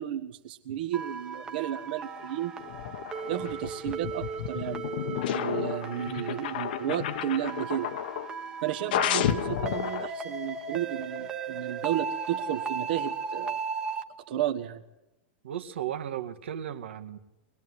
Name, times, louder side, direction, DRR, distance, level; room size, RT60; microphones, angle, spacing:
voice 1, 0.0-2.5 3.3-7.9 8.6-13.6 14.3-14.8, right 11 dB, 50° right, 3 dB, 1.5 m, -33 dB
sound 1, 0.9-14.0, right 5 dB, 15° right, 1.2 m, -37 dB
sound 2, 2.6-8.3 8.9-10.1, left 11 dB, 55° left, 1.2 m, -31 dB
voice 2, 15.4-17.2, right 10 dB, 80° right, 6 dB, 2.1 m, -35 dB
24.0 x 20.0 x 9.8 m, 0.92 s
supercardioid pair, 170°, 6 cm